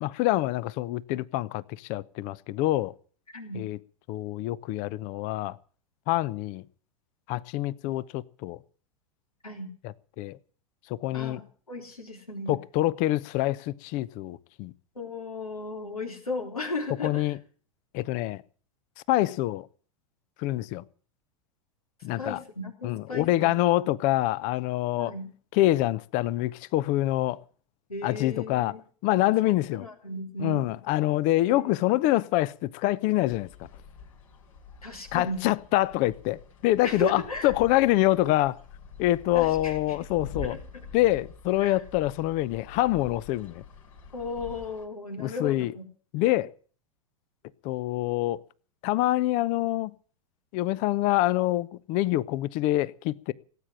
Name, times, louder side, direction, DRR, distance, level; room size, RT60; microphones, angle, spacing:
voice 1, 0.0-2.9 3.5-3.8 4.1-5.6 6.1-6.6 7.3-8.6 10.2-10.4 10.9-11.4 12.5-14.7 17.0-17.4 17.9-18.4 19.1-19.7 20.4-20.8 22.0-22.4 22.8-25.1 25.5-27.4 28.0-28.7 29.0-29.8 30.4-33.5 35.1-38.6 39.0-40.6 40.9-43.6 45.2-45.7 46.1-46.5 47.6-48.4 48.8-49.9 50.5-53.3, left 16 dB, 45° left, 0.8 m, -26 dB
voice 2, 3.3-3.7 9.4-9.7 11.1-11.4 11.7-12.6 15.0-17.4 22.2-23.9 25.0-25.3 27.9-28.8 29.4-30.8 31.5-31.8 34.8-35.5 36.8-37.5 39.3-40.0 40.4-40.9 41.6-41.8 44.1-45.8, left 2 dB, 90° left, 3.7 m, -36 dB
sound 1, 32.9-44.9, left 4 dB, 70° left, 4.2 m, -46 dB
18.0 x 8.8 x 9.0 m
figure-of-eight pair, 90°, 18 cm